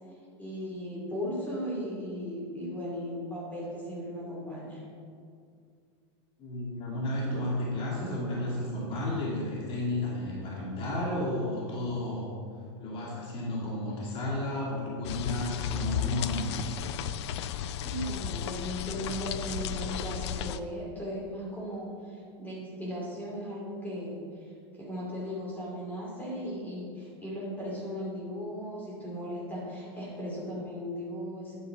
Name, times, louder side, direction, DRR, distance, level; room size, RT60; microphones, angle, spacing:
voice 1, 0.4-4.8 17.8-31.6, equal, 10° left, -5 dB, 2.5 m, -37 dB
voice 2, 6.4-12.3 12.8-16.8, left 1 dB, 40° left, -4 dB, 2.4 m, -32 dB
sound 1, 15.0-20.6, left 9 dB, 75° left, 0.4 m, -34 dB
9.4 x 6.2 x 4.7 m, 2.2 s
supercardioid pair, 130°, 14 cm